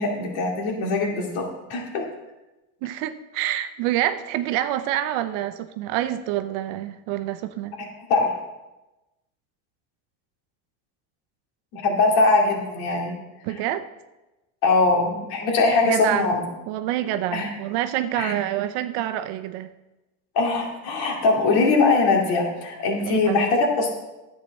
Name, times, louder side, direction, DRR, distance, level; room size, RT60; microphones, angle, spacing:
voice 1, 0.0-2.0 8.1-8.3 11.7-13.1 14.6-16.4 17.3-17.5 18.2-18.3 20.3-23.9, left 3 dB, 70° left, 0 dB, 2.7 m, -21 dB
voice 2, 2.8-7.7 13.4-13.9 15.8-16.3 16.7-19.7 23.1-23.4, right 12 dB, 65° right, 10 dB, 0.7 m, -27 dB
10.5 x 8.3 x 4.3 m, 1.0 s
supercardioid pair, 110°, 47 cm